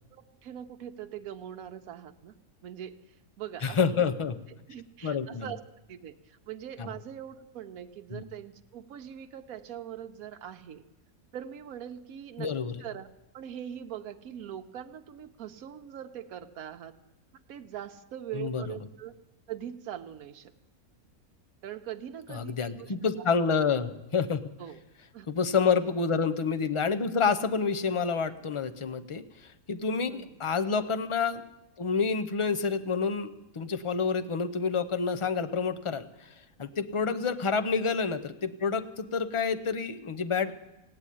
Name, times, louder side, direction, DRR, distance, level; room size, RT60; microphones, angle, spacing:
voice 1, 0.1-2.3 2.6-3.0 3.4-4.1 4.7-5.6 5.9-10.8 11.3-12.5 12.8-13.1 13.3-17.0 17.5-19.1 19.5-20.5 21.6-22.9 24.6-24.8 25.1-25.3 30.1-30.3 37.1-37.2, right 10 dB, 80° right, 6 dB, 1.2 m, -42 dB
voice 2, 3.6-4.4 5.0-5.5 6.8-6.9 8.1-8.2 12.4-12.8 18.3-18.7 22.3-24.5 25.3-31.4 31.8-40.5, left 5 dB, 40° left, 11 dB, 0.4 m, -28 dB
16.5 x 8.8 x 9.8 m, 0.97 s
omnidirectional pair, 1.5 m